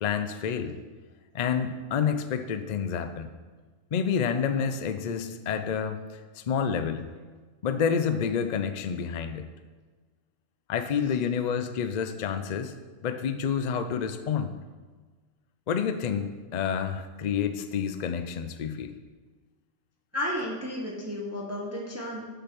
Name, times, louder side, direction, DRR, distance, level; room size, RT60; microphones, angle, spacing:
voice 1, 0.0-0.7 1.3-3.3 3.9-6.0 6.5-7.0 7.6-9.5 10.7-12.7 13.0-14.6 15.7-18.9, left 7 dB, 65° left, 9 dB, 0.4 m, -28 dB
voice 2, 20.1-22.3, left 1 dB, 15° right, -1 dB, 0.9 m, -32 dB
6.8 x 5.7 x 6.0 m, 1.4 s
omnidirectional pair, 1.4 m